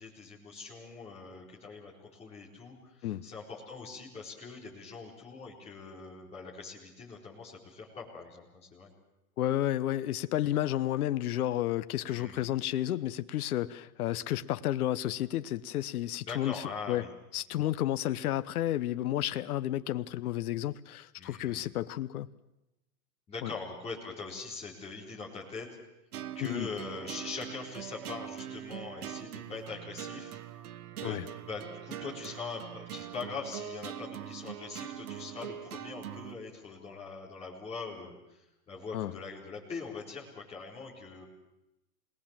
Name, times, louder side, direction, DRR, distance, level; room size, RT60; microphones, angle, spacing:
voice 1, 0.0-8.9 12.1-12.4 16.2-17.1 21.2-21.7 23.3-25.7 26.3-30.4 31.0-41.2, left 4 dB, 15° left, 4.2 m, -42 dB
voice 2, 9.4-17.1 17.3-22.3 23.4-23.5 26.4-26.7 31.0-31.3 38.9-39.1, left 13 dB, 70° left, 0.9 m, -31 dB
sound 1, 26.1-36.4, right 10 dB, 70° right, 1.4 m, -42 dB
27.0 x 20.0 x 7.4 m
supercardioid pair, 170°, 46 cm